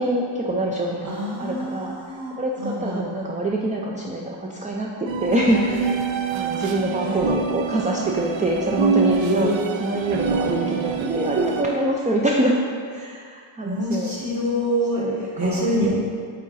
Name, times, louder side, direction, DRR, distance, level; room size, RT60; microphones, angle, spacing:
voice 1, 0.0-12.6 12.9-14.1 15.0-15.1 15.4-15.6, right 1 dB, 20° right, -1 dB, 0.3 m, -25 dB
voice 2, 1.0-3.0 7.0-7.2 9.2-9.6 13.6-15.9, equal, 40° right, -6 dB, 1.6 m, -25 dB
sound 1, 5.1-11.6, right 5 dB, 75° right, 0.6 m, -26 dB
8.4 x 3.6 x 4.0 m, 2.1 s
wide cardioid pair, 175°, 46 cm